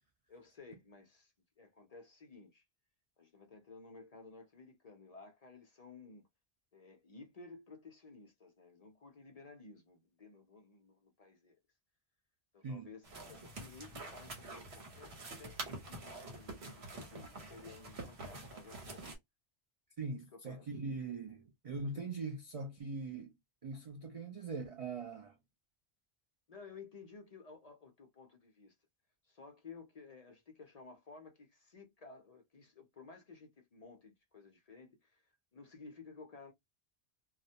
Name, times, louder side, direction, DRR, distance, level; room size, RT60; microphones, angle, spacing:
voice 1, 0.3-2.6 3.2-6.2 6.7-11.6 12.5-19.1 20.1-20.7 21.8-22.0 26.5-28.8 29.2-36.5, left 4 dB, 45° left, 0.5 m, -55 dB
voice 2, 12.6-12.9 20.0-23.4 23.6-25.4, right 3 dB, 60° right, 0.3 m, -41 dB
sound 1, 13.0-19.2, right 2 dB, 80° right, 1.1 m, -47 dB
2.3 x 2.1 x 2.7 m
omnidirectional pair, 1.1 m